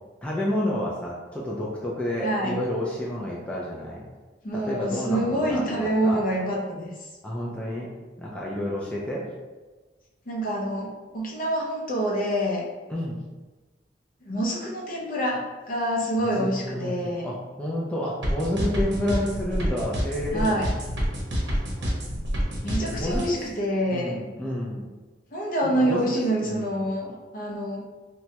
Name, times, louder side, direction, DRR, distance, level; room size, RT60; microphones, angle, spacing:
voice 1, 0.2-4.0 4.5-6.2 7.2-7.9 8.2-9.3 12.9-13.2 16.2-20.6 21.4-21.9 22.8-23.4 23.9-24.9 25.6-26.7, left 1 dB, 5° left, -5 dB, 0.3 m, -30 dB
voice 2, 2.2-2.6 4.4-6.9 10.3-12.7 14.2-17.3 20.3-20.7 22.6-24.2 25.3-27.8, right 1 dB, 50° left, -3 dB, 0.6 m, -26 dB
sound 1, 18.2-23.3, equal, 70° right, 0.7 m, -27 dB
3.0 x 2.2 x 2.8 m, 1.3 s
head